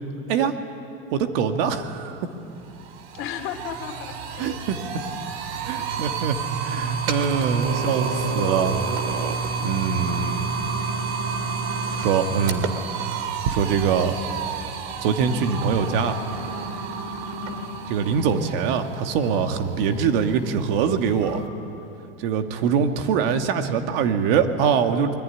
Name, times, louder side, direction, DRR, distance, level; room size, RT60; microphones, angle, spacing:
voice 1, 1.1-2.2 4.4-4.8 5.7-6.4 6.6-8.8 9.6-10.6 12.0-12.7 13.5-14.1 15.0-16.2 17.9-21.4 22.2-25.1, right 6 dB, 70° right, 6 dB, 2.0 m, -23 dB
sound 1, 2.0-2.1 2.5-21.5, right 6 dB, 90° right, 2.5 m, -30 dB
voice 2, 3.1-4.6 5.7-6.2 8.1-9.2 9.6-10.1 17.3-18.0, left 9 dB, 45° left, 5 dB, 2.7 m, -37 dB
sound 2, 10.0-12.1 15.4-17.7 21.2-21.4, right 2 dB, 45° right, 3.0 m, -35 dB
23.5 x 22.0 x 10.0 m, 2.7 s
supercardioid pair, 150°, 29 cm